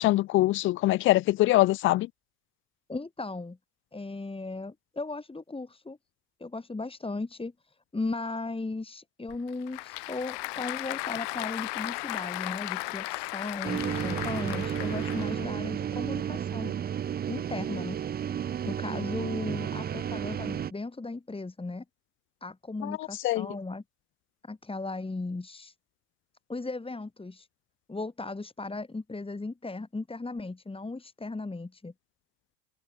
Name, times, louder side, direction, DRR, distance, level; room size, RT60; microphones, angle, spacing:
voice 1, 0.0-2.1 22.8-22.9 23.2-23.5, left 17 dB, 30° left, 0.4 m, -23 dB
voice 2, 2.9-3.6 3.9-6.0 6.4-16.7 17.3-18.0 18.6-21.8 22.4-23.8 24.4-25.7 26.5-27.5 27.9-31.9, left 3 dB, 10° left, 7.7 m, -36 dB
Applause / Crowd, 9.3-15.5, left 23 dB, 55° left, 2.3 m, -36 dB
sound 1, 13.6-20.7, right 9 dB, 20° right, 0.6 m, -32 dB
open air
supercardioid pair, 115°, 50 cm